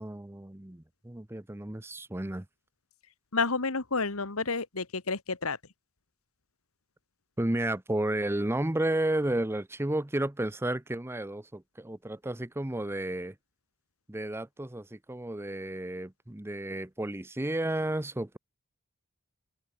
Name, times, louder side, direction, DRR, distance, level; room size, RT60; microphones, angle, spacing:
voice 1, 0.0-2.5 7.4-13.3 14.1-18.4, right 1 dB, 10° right, 0.7 m, -32 dB
voice 2, 3.3-5.6, left 4 dB, 85° left, 1.9 m, -30 dB
open air
head